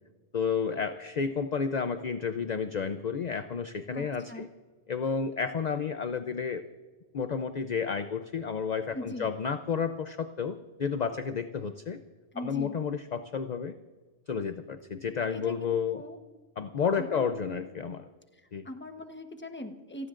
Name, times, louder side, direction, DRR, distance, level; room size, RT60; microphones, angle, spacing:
voice 1, 0.3-4.5 4.9-6.6 7.1-12.0 12.4-13.7 14.3-16.0 16.6-18.1 18.5-18.7, left 6 dB, 45° left, 8 dB, 0.6 m, -31 dB
voice 2, 3.9-4.4 8.9-9.3 12.3-12.8 15.3-16.2 17.0-17.5 18.3-20.1, left 1 dB, 10° left, 5 dB, 1.0 m, -41 dB
28.0 x 18.0 x 2.5 m, 1.4 s
omnidirectional pair, 1.1 m